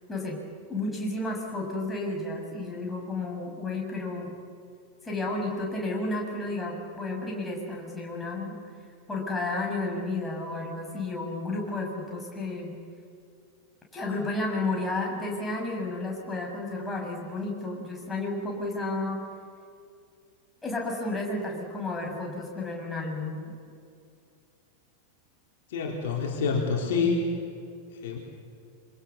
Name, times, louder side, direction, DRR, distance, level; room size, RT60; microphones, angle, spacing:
voice 1, 0.1-4.4 5.0-8.6 9.1-12.7 13.9-19.3 20.6-23.6, left 2 dB, 10° left, -1 dB, 6.7 m, -32 dB
voice 2, 25.7-27.2 28.0-28.2, left 4 dB, 55° left, 0 dB, 3.8 m, -27 dB
27.0 x 24.5 x 7.1 m, 2.4 s
figure-of-eight pair, 90°, 0 cm